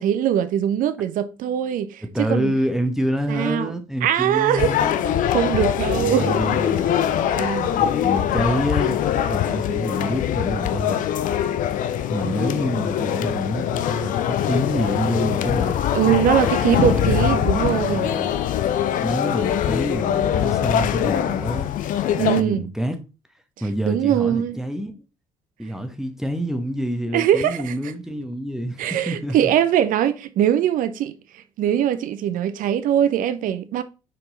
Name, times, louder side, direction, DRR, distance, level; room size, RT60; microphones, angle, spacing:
voice 1, 0.0-2.5 3.3-3.7 4.0-4.7 5.3-6.4 7.4-7.7 15.9-18.1 22.2-22.6 23.8-24.6 27.1-27.7 28.8-31.1 31.6-33.8, right 10 dB, 55° right, 0.7 m, -21 dB
voice 2, 2.1-5.0 5.9-6.9 7.8-9.0 9.3-11.0 12.1-15.8 16.0-18.3 19.0-21.7 22.1-23.0 23.6-25.0 25.6-29.5, equal, 5° right, 1.1 m, -27 dB
sound 1, 4.6-22.4, left 10 dB, 50° left, 0.6 m, -23 dB
6.4 x 4.6 x 3.9 m
figure-of-eight pair, 50°, 17 cm